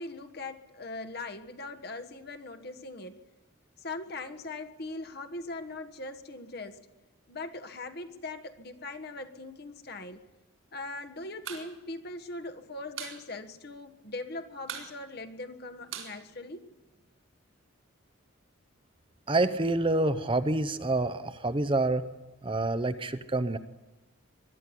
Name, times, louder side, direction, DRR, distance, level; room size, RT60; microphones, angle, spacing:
voice 1, 0.0-3.2 3.8-6.8 7.3-10.2 10.7-16.7, left 2 dB, 50° left, 8 dB, 1.4 m, -40 dB
sound 1, 11.3-11.7 11.9-12.0 12.3-13.2 13.5-13.6 13.9-14.3 14.6-17.0, right 8 dB, 80° right, 4.3 m, -41 dB
voice 2, 19.3-22.1 22.4-23.6, right 2 dB, 25° right, 12 dB, 0.7 m, -27 dB
21.5 x 12.5 x 9.9 m, 1.1 s
head